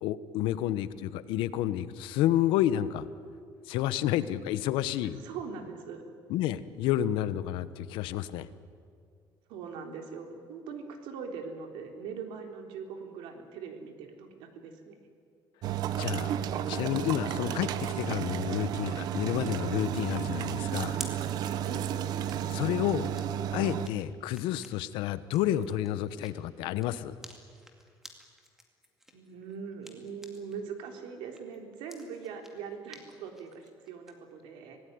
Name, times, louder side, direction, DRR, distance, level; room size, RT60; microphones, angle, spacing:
voice 1, 0.0-3.1 3.7-5.2 6.3-8.5 16.0-16.4 16.7-21.0 22.5-23.1 23.5-27.1, left 12 dB, 75° left, 14 dB, 1.1 m, -30 dB
voice 2, 5.2-6.0 9.5-15.0 21.7-21.9 29.1-34.8, right 6 dB, 80° right, 4 dB, 3.7 m, -41 dB
sound 1, 15.6-23.9, right 10 dB, 50° right, 0.9 m, -32 dB
sound 2, 21.0-30.6 31.0-34.1, equal, 5° right, 2.3 m, -51 dB
26.0 x 18.5 x 9.6 m, 2.2 s
cardioid pair, 170°, 9 cm